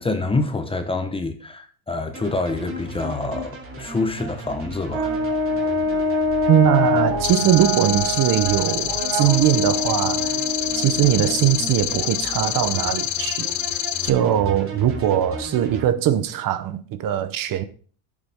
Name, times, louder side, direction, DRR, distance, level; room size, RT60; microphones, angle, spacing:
voice 1, 0.0-5.2, left 3 dB, 10° left, 0.9 m, -26 dB
sound 1, 2.1-15.8, right 1 dB, 25° right, 2.5 m, -37 dB
Brass instrument, 4.9-11.6, left 1 dB, 70° right, 3.2 m, -25 dB
voice 2, 6.5-10.4 10.8-13.5 14.0-17.6, right 11 dB, 45° right, 0.8 m, -21 dB
sound 2, 7.2-14.1, left 14 dB, 75° left, 1.0 m, -26 dB
13.5 x 7.3 x 3.5 m
cardioid pair, 165°, 48 cm